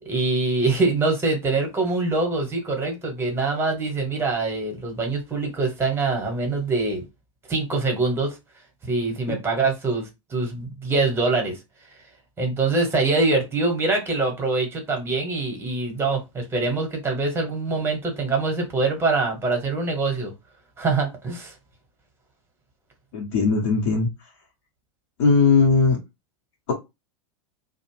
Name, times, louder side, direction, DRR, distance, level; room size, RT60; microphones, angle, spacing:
voice 1, 0.0-7.0 7.5-8.4 8.8-11.6 12.4-20.3 20.8-21.5, right 3 dB, 15° right, 1.0 m, -24 dB
voice 2, 23.1-24.1 25.2-26.0, left 4 dB, 55° left, 0.9 m, -18 dB
2.4 x 2.0 x 3.1 m
figure-of-eight pair, 95°, 17 cm